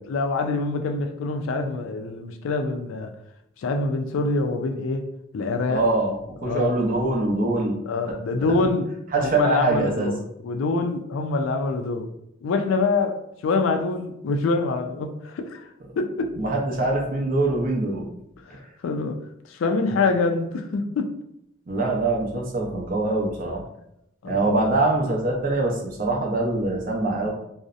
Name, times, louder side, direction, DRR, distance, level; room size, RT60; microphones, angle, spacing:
voice 1, 0.1-3.1 3.6-5.0 5.3-5.8 6.4-6.8 7.9-8.9 9.2-12.1 12.4-15.7 15.9-16.3 18.5-19.2 19.5-21.1 24.2-24.5, left 3 dB, 75° left, 0.3 m, -25 dB
voice 2, 5.7-7.8 9.1-10.1 16.4-18.1 21.7-23.6 24.3-27.3, right 2 dB, 45° right, 0.5 m, -23 dB
2.6 x 2.0 x 2.4 m
head